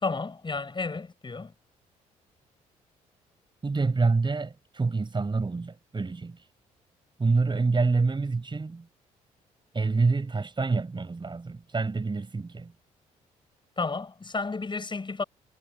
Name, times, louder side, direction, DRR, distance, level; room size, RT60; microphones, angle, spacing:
voice 1, 0.0-1.5 13.8-15.2, left 4 dB, 30° left, 5.8 m, -32 dB
voice 2, 3.6-6.4 7.2-8.9 9.7-12.7, right 3 dB, 30° right, 4.7 m, -27 dB
supercardioid pair, 55°, 16 cm